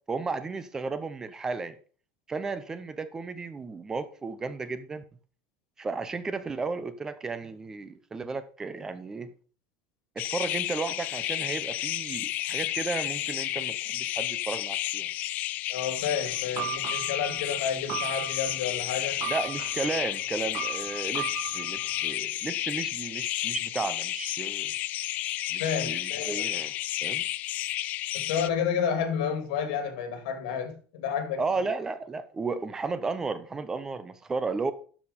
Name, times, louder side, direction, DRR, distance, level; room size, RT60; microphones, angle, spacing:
voice 1, 0.1-1.8 2.3-5.0 5.8-9.3 10.2-15.1 19.3-24.7 25.5-26.7 27.0-27.2 31.4-34.7, right 4 dB, 15° right, 0.6 m, -34 dB
sound 1, 10.2-28.5, left 15 dB, 40° left, 0.4 m, -32 dB
voice 2, 15.7-19.2 25.6-26.3 28.1-31.7, left 7 dB, 80° left, 2.6 m, -30 dB
sound 2, 16.1-22.1, right 13 dB, 45° right, 1.1 m, -38 dB
12.5 x 5.1 x 5.2 m
cardioid pair, 165°, 4 cm